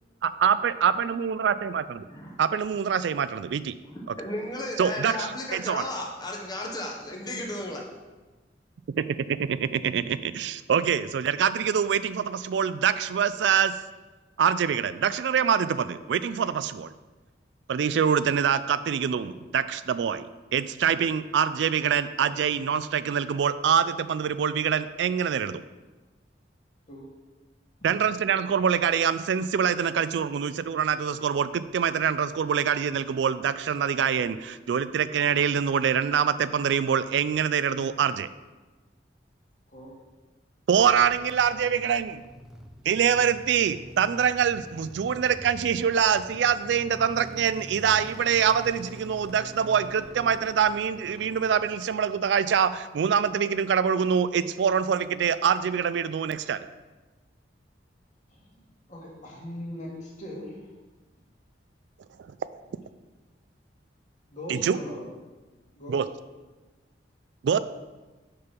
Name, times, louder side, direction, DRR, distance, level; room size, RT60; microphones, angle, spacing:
voice 1, 0.2-2.0 2.4-3.8 4.1-4.2 4.8-5.8 9.0-13.8 14.4-16.9 17.7-25.6 27.8-38.3 40.7-42.2 42.9-56.6 64.5-64.8 65.9-66.1 67.4-67.6, right 7 dB, 70° right, 14 dB, 0.3 m, -25 dB
voice 2, 3.8-7.8, left 1 dB, 20° left, -1 dB, 1.1 m, -34 dB
voice 3, 26.9-27.2 27.8-27.9 39.7-40.0 58.3-58.6 58.9-60.7 64.3-65.1 65.7-66.1, left 1 dB, 40° left, -3 dB, 2.1 m, -40 dB
sound 1, 40.7-53.0, equal, 5° right, 0.5 m, -46 dB
6.6 x 5.3 x 5.9 m, 1.2 s
head